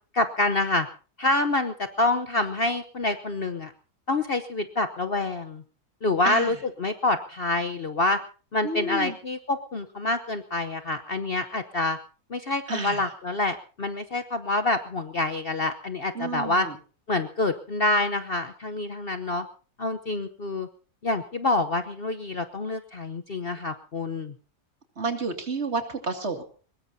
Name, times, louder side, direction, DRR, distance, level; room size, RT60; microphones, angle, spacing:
voice 1, 0.1-0.9 1.2-3.7 4.1-5.6 6.0-8.2 8.5-12.0 12.3-16.7 17.1-19.4 19.8-20.7 21.0-24.3, left 2 dB, 45° left, 9 dB, 1.0 m, -27 dB
voice 2, 6.2-6.6 8.6-9.2 12.7-13.0 16.1-16.8 25.0-26.4, right 3 dB, 45° right, 5 dB, 2.6 m, -30 dB
23.0 x 20.5 x 2.7 m, 0.38 s
omnidirectional pair, 1.7 m